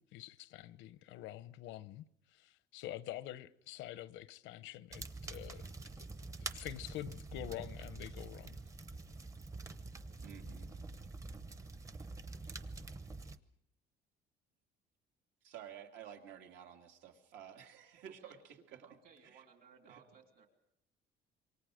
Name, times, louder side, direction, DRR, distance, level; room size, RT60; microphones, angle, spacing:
voice 1, 0.0-5.6 6.0-6.1 6.4-8.6 10.4-10.5, left 14 dB, 85° left, 0.9 m, -47 dB
sound 1, 4.9-13.4, right 3 dB, 15° right, 0.8 m, -46 dB
voice 2, 10.2-10.7 15.4-18.4 18.7-18.9 19.2-19.4 19.8-20.0, right 9 dB, 75° right, 2.6 m, -52 dB
voice 3, 18.0-18.4 18.8-20.5, right 6 dB, 50° right, 3.3 m, -61 dB
27.0 x 24.0 x 5.1 m
cardioid pair, 175°, 19 cm